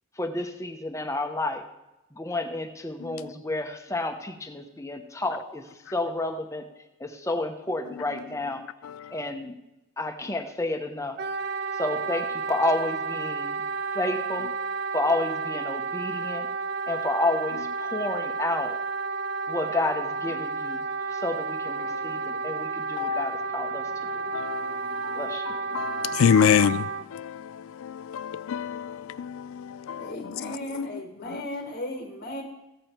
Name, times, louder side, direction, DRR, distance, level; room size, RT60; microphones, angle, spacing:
voice 1, 0.2-1.6 2.1-6.6 7.0-8.6 9.1-9.5 10.0-11.2 11.7-13.6 13.9-14.5 14.9-16.5 16.9-18.7 19.5-20.8 21.1-24.3 25.1-25.4, left 2 dB, 15° left, 1.0 m, -30 dB
Wind instrument woodwind instrument, 11.2-27.0, right 4 dB, 50° right, 0.5 m, -31 dB
voice 2, 21.8-22.2 23.0-23.4 24.0-25.2 25.5-30.9 31.3-31.4, left 7 dB, 85° left, 0.4 m, -28 dB
voice 3, 29.9-32.4, left 1 dB, 45° left, 1.2 m, -36 dB
14.5 x 8.7 x 4.5 m
head